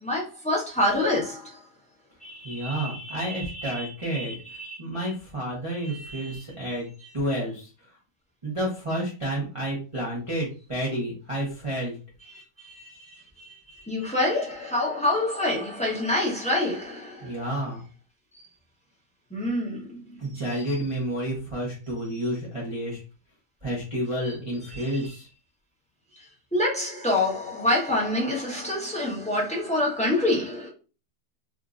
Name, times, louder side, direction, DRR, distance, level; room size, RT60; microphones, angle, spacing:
voice 1, 0.0-1.5 2.2-4.8 5.0-5.1 5.8-6.4 6.7-7.1 12.3-17.4 19.3-20.0 20.3-20.7 24.7-25.1 26.5-30.7, left 1 dB, 5° left, 0.6 m, -28 dB
voice 2, 2.4-4.4 4.8-6.8 7.1-7.7 8.4-11.9 17.2-17.8 20.2-23.0 23.6-25.3, right 1 dB, 25° right, 0.8 m, -30 dB
3.6 x 2.6 x 2.4 m
omnidirectional pair, 1.7 m